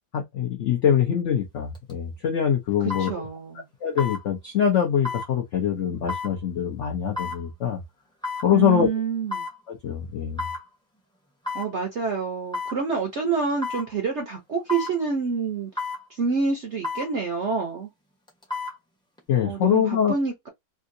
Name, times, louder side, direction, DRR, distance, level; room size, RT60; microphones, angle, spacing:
voice 1, 0.1-3.1 3.8-7.8 8.4-8.9 9.7-10.4 19.3-20.1, left 8 dB, 70° left, 0.7 m, -23 dB
sound 1, 1.7-1.9 2.9-3.1 4.0-4.2 5.0-5.3 6.1-6.3 7.2-7.4 8.2-8.5 9.3-9.6 10.4-10.6 11.4-11.7 12.5-12.8 13.6-13.9 14.7-14.9 15.8-16.0 16.8-17.1 18.3-18.8 19.2-19.3, left 3 dB, 5° left, 0.4 m, -31 dB
voice 2, 3.0-3.7 8.5-9.5 11.5-15.7 16.1-17.9 19.4-20.5, right 5 dB, 55° right, 0.7 m, -27 dB
3.6 x 2.5 x 2.6 m
omnidirectional pair, 2.0 m